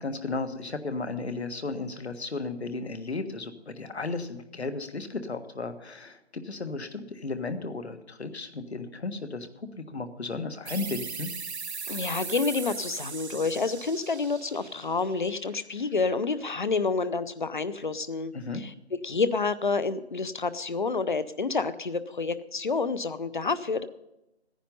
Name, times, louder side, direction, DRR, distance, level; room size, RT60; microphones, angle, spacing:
voice 1, 0.0-11.3 18.3-18.6, left 3 dB, 70° left, 8 dB, 1.6 m, -34 dB
sound 1, 10.7-15.9, right 5 dB, 70° right, 0.9 m, -39 dB
voice 2, 11.9-18.7 19.0-23.9, left 4 dB, 45° left, 14 dB, 0.8 m, -29 dB
16.0 x 10.0 x 5.5 m, 0.90 s
figure-of-eight pair, 165°, 34 cm